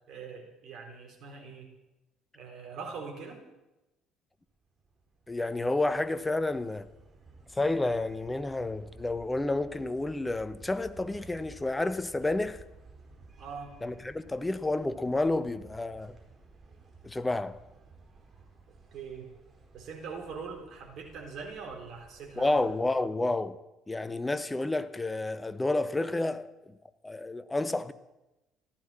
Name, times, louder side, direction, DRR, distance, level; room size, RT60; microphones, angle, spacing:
voice 1, 0.1-1.7 2.3-3.4 13.4-13.7 18.9-19.3 19.7-22.7, right 5 dB, 55° right, 4.0 m, -42 dB
sound 1, 4.5-22.9, right 3 dB, 35° right, 4.4 m, -55 dB
voice 2, 5.3-6.9 7.5-12.6 13.8-16.2 17.0-17.6 22.4-23.6 23.9-26.8 27.0-27.9, left 2 dB, 15° left, 1.1 m, -30 dB
15.0 x 12.0 x 7.5 m
figure-of-eight pair, 55°, 0 cm